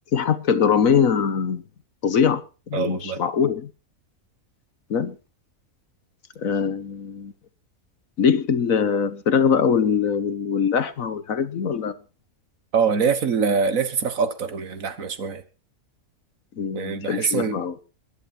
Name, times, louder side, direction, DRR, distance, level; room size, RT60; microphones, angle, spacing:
voice 1, 0.1-1.6 2.0-3.7 4.9-5.2 6.4-7.3 8.2-12.0 16.6-17.7, left 7 dB, 65° left, 1.5 m, -22 dB
voice 2, 2.7-3.2 12.7-15.4 16.7-17.6, right 5 dB, 65° right, 1.8 m, -24 dB
22.0 x 10.5 x 4.4 m
omnidirectional pair, 1.6 m